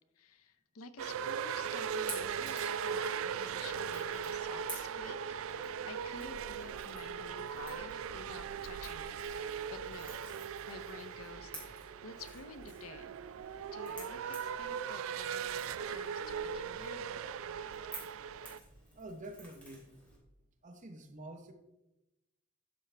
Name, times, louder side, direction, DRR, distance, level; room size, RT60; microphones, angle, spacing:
voice 1, 0.2-9.2 9.7-10.2 10.7-13.1 13.7-17.1, left 4 dB, 85° left, 0.7 m, -51 dB
sound 1, 1.0-18.6, right 7 dB, 70° right, 0.3 m, -39 dB
Crackle / Crack, 1.8-20.2, right 1 dB, 5° left, 2.8 m, -52 dB
voice 2, 18.9-19.9 20.6-21.5, right 1 dB, 35° right, 0.8 m, -48 dB
11.5 x 7.0 x 3.3 m
head